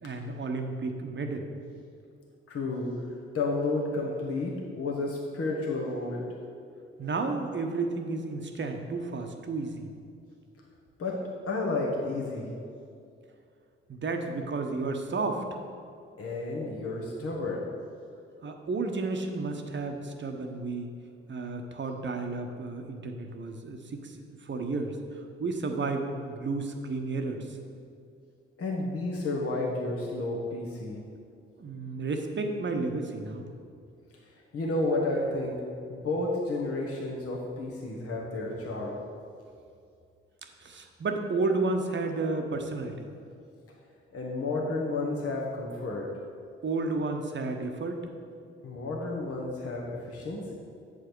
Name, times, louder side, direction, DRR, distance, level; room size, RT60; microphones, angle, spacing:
voice 1, 0.0-1.5 7.0-9.9 13.9-15.4 18.4-20.9 21.3-24.2 24.4-25.0 25.4-27.6 31.6-33.4 40.6-43.1 46.6-48.0, right 3 dB, 40° right, 4 dB, 0.9 m, -32 dB
voice 2, 2.5-2.9 3.3-6.3 11.0-12.5 16.2-17.7 28.6-31.0 34.3-35.6 35.9-39.0 44.1-46.1 48.6-50.5, left 2 dB, 50° left, -2 dB, 1.2 m, -31 dB
8.2 x 4.8 x 4.6 m, 2.4 s
hypercardioid pair, 40°, 30 cm